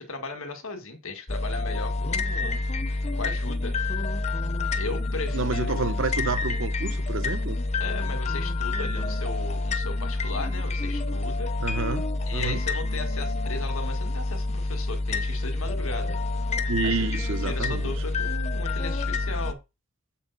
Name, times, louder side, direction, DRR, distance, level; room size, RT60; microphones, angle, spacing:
voice 1, 0.0-2.6 2.9-4.0 4.8-5.8 7.8-11.5 12.2-16.2 16.8-17.1 17.4-19.6, left 3 dB, 80° left, 1.8 m, -36 dB
sound 1, 1.3-19.5, left 2 dB, 30° left, 0.7 m, -28 dB
voice 2, 5.3-7.6 11.6-12.0 12.3-12.6 16.7-17.9, right 4 dB, 65° right, 0.9 m, -29 dB
7.7 x 5.7 x 4.0 m
head